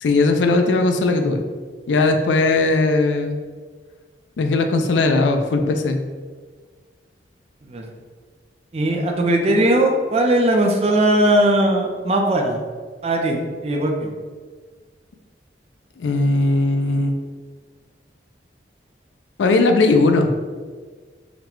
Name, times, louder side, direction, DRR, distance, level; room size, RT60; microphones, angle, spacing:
voice 1, 0.0-1.4 1.9-3.4 4.4-6.0 16.0-17.2 19.4-20.3, left 3 dB, 90° left, 6 dB, 0.4 m, -18 dB
voice 2, 8.7-12.6 13.0-14.1, right 1 dB, 35° right, 2 dB, 0.5 m, -19 dB
3.9 x 2.1 x 4.4 m, 1.5 s
head